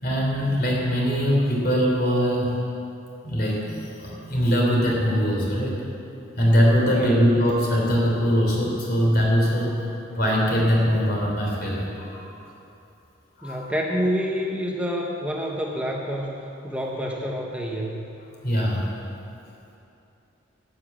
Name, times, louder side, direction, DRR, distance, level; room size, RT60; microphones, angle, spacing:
voice 1, 0.0-2.5 3.2-5.8 6.4-9.8 10.2-12.2 13.4-13.6 18.4-18.9, equal, 55° left, -2 dB, 3.2 m, -22 dB
voice 2, 6.9-7.3 13.4-18.0, equal, 5° right, -1 dB, 0.9 m, -28 dB
12.0 x 8.5 x 7.4 m, 2.8 s
head